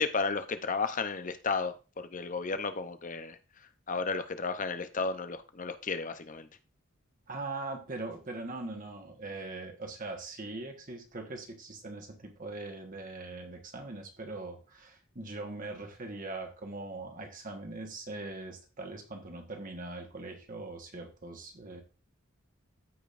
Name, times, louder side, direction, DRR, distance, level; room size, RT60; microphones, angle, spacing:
voice 1, 0.0-3.4 3.9-6.5, left 4 dB, 40° left, 10 dB, 0.7 m, -33 dB
voice 2, 7.3-21.8, right 2 dB, 40° right, 3 dB, 1.4 m, -41 dB
14.0 x 5.1 x 2.6 m, 0.33 s
head